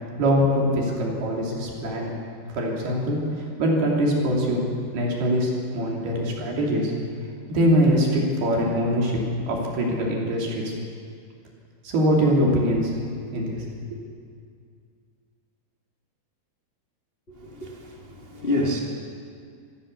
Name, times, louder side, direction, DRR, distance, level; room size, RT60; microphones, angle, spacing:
voice 1, 0.2-2.1 2.5-4.6 4.9-6.9 7.5-9.1 9.5-10.7 11.8-12.9 13.3-13.7 13.9-14.1, equal, 70° right, -2 dB, 5.2 m, -23 dB
voice 2, 17.3-18.8, left 1 dB, 20° left, -2 dB, 1.5 m, -28 dB
26.0 x 15.0 x 6.9 m, 2.3 s
omnidirectional pair, 4.7 m